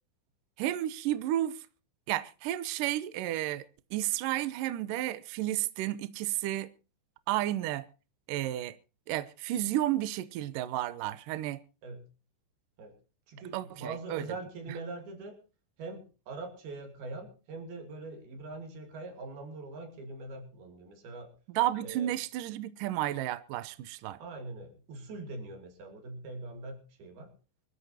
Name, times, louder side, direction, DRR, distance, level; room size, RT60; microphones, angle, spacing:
voice 1, 0.6-1.6 2.1-6.7 7.3-7.9 8.3-8.8 9.1-11.6 13.5-14.2 21.5-24.2, right 14 dB, 90° right, 1.9 m, -32 dB
voice 2, 13.3-15.4 15.8-21.3 21.8-22.1 24.2-27.3, right 3 dB, 60° right, 4.6 m, -42 dB
24.5 x 13.0 x 2.9 m
omnidirectional pair, 5.0 m